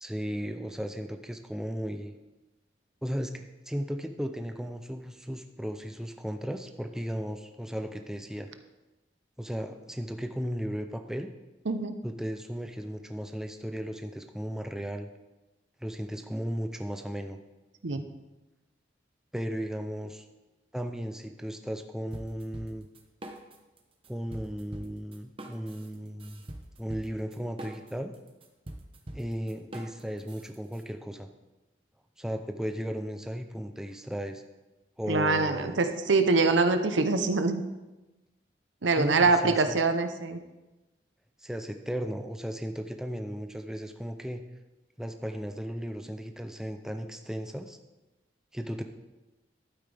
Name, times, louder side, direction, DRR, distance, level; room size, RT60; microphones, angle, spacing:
voice 1, 0.0-2.1 3.0-8.5 9.4-11.3 12.0-15.1 15.8-17.4 19.3-20.3 20.7-22.9 24.1-26.4 26.8-28.1 29.1-31.3 32.2-34.4 35.0-35.8 39.0-39.8 41.4-44.4 45.0-47.8 48.5-48.8, equal, 5° right, 6 dB, 0.5 m, -35 dB
sound 1, 22.1-23.8 24.0-30.8, right 1 dB, 30° right, 0.9 m, -44 dB
voice 2, 35.1-37.6 38.8-40.4, right 3 dB, 90° right, 8 dB, 0.8 m, -24 dB
12.0 x 9.2 x 3.4 m, 1.1 s
head